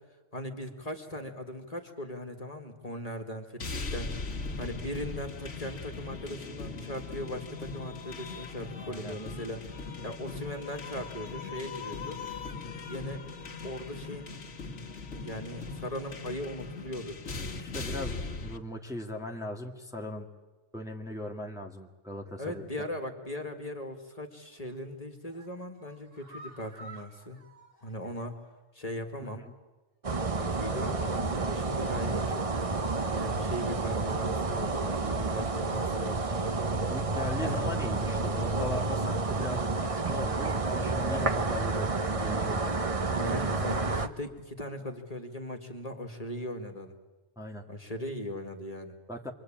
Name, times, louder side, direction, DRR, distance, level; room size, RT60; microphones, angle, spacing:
voice 1, 0.3-4.2 4.6-9.6 10.0-12.2 12.9-13.2 13.6-14.4 15.1-17.2 22.4-27.4 27.8-28.4 28.7-29.4 30.4-32.5 33.1-36.2 37.4-37.6 43.0-46.9 47.7-49.0, equal, 30° left, 4 dB, 2.2 m, -39 dB
sound 1, 3.6-18.6, left 3 dB, 80° left, 2.0 m, -39 dB
voice 2, 8.8-9.2 17.6-20.3 20.7-22.6 29.2-29.5 36.9-42.7 47.4-47.6 49.1-49.3, left 1 dB, 5° right, 0 dB, 1.9 m, -39 dB
sound 2, 24.4-24.8 25.2-28.6 28.9-29.0 29.4-29.5, right 2 dB, 50° right, 3.9 m, -52 dB
sound 3, 30.0-44.1, right 3 dB, 30° right, 1.0 m, -30 dB
27.5 x 23.0 x 8.9 m, 1.2 s
omnidirectional pair, 1.2 m